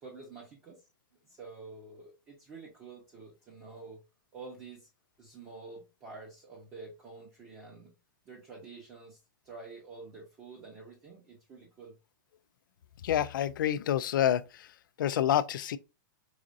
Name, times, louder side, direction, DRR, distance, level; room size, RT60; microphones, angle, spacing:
voice 1, 0.0-0.8 1.2-4.0 4.3-4.9 5.2-7.9 8.3-9.2 9.4-11.9, right 4 dB, 20° right, 0.9 m, -48 dB
voice 2, 13.0-14.7 15.0-15.8, left 11 dB, 75° left, 0.4 m, -28 dB
4.9 x 2.4 x 2.6 m
supercardioid pair, 160°, 11 cm